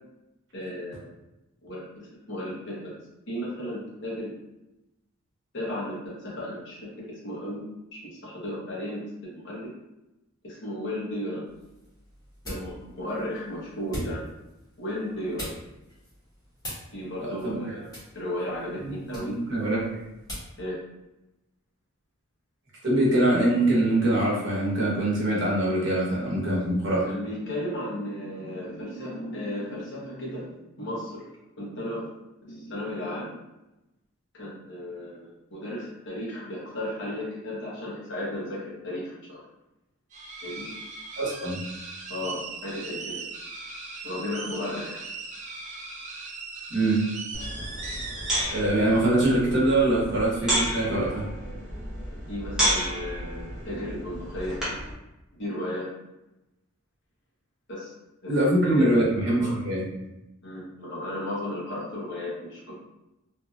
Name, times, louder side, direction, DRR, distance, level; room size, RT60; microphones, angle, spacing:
voice 1, 0.5-1.1 1.6-2.9 3.3-4.4 5.5-7.6 7.9-9.7 10.4-11.4 12.5-14.3 14.8-15.5 16.9-17.9 18.1-19.3 20.6-20.8 27.0-31.2 31.6-32.0 32.4-33.3 34.4-39.4 40.4-40.7 42.1-43.1 44.0-45.0 52.3-54.6 55.4-55.9 57.7-57.9 58.2-58.3 58.6-59.0 59.4-59.6 60.4-62.7, left 1 dB, 60° left, -6 dB, 1.0 m, -34 dB
sound 1, 11.4-20.6, equal, 20° left, 1.2 m, -43 dB
voice 2, 17.2-17.7 18.8-20.0 22.8-27.1 41.2-41.6 46.7-47.1 48.5-51.2 58.3-59.9, right 1 dB, 60° right, -5 dB, 1.0 m, -23 dB
sound 2, 40.1-48.4, right 3 dB, 35° right, 0.6 m, -39 dB
sound 3, 47.3-54.9, equal, 5° right, 0.9 m, -31 dB
2.8 x 2.6 x 2.4 m, 0.96 s
head